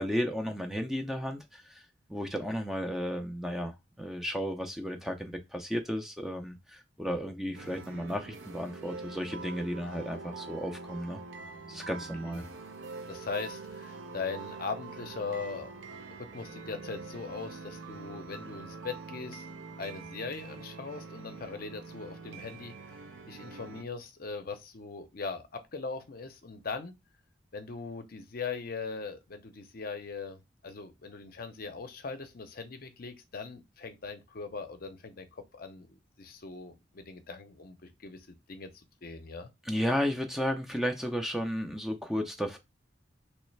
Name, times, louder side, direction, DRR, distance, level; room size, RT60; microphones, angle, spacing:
voice 1, 0.0-1.8 2.1-11.2 11.7-12.4 39.7-42.6, equal, ahead, 0.4 m, -33 dB
sound 1, 7.5-23.8, right 4 dB, 75° right, 0.6 m, -44 dB
voice 2, 13.1-15.7 16.2-19.4 19.8-22.7 23.3-26.9 27.5-39.5, left 4 dB, 50° left, 0.6 m, -40 dB
3.2 x 3.1 x 3.2 m
head